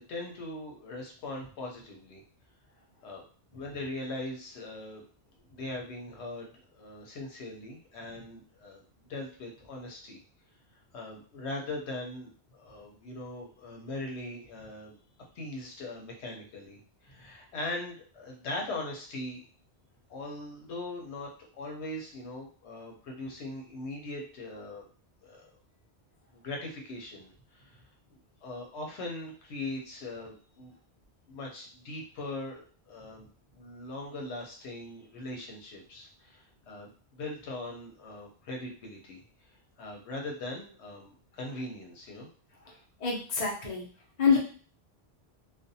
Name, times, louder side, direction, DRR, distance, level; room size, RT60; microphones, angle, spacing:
voice 1, 0.0-2.2 3.0-3.2 3.5-5.0 5.5-8.8 9.1-10.2 10.9-15.0 15.4-19.4 20.1-21.3 21.6-24.8 25.2-25.5 26.3-27.8 28.1-30.7 31.3-33.3 33.5-39.2 39.8-42.3, left 2 dB, 85° left, 0 dB, 1.0 m, -40 dB
voice 2, 43.0-43.8 44.2-44.4, left 5 dB, 45° left, -2 dB, 0.8 m, -26 dB
2.5 x 2.1 x 2.7 m, 0.41 s
omnidirectional pair, 1.1 m